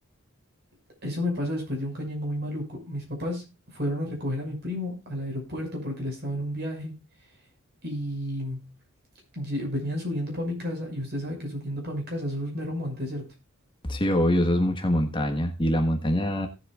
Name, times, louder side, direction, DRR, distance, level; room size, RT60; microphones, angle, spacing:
voice 1, 1.0-3.4 3.7-6.9 7.8-8.7 9.3-13.2, left 1 dB, 50° right, 1 dB, 6.0 m, -31 dB
voice 2, 13.8-16.5, equal, 25° left, 4 dB, 1.5 m, -24 dB
18.0 x 7.9 x 2.4 m, 0.28 s
head